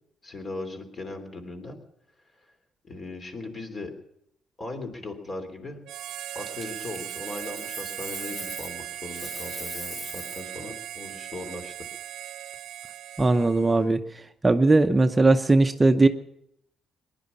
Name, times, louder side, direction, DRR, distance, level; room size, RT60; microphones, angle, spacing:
voice 1, 0.2-1.8 2.8-3.9 4.6-5.8 6.3-11.7, left 2 dB, 40° left, 5 dB, 3.3 m, -38 dB
Harmonica, 5.8-13.9, right 12 dB, 85° right, 0.6 m, -38 dB
Coin (dropping), 6.4-8.8 9.1-10.5 13.4-13.6, equal, 10° left, 1.9 m, -40 dB
voice 2, 13.2-14.0 14.4-16.1, right 2 dB, 20° right, 7 dB, 0.7 m, -19 dB
19.5 x 10.5 x 7.0 m, 0.79 s
cardioid pair, 90°, 0 cm